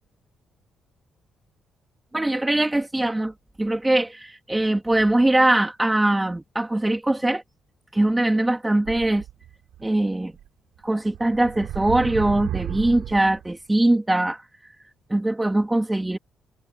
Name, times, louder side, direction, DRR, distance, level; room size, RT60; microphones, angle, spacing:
voice 1, 2.1-3.3 3.6-7.4 7.9-9.2 9.8-10.3 10.8-14.4 15.1-16.2, right 1 dB, 10° right, 2.6 m, -21 dB
sound 1, 8.9-9.8 10.4-10.5 11.1-13.5, right 12 dB, 85° right, 3.3 m, -33 dB
cardioid pair, 90°, 0 cm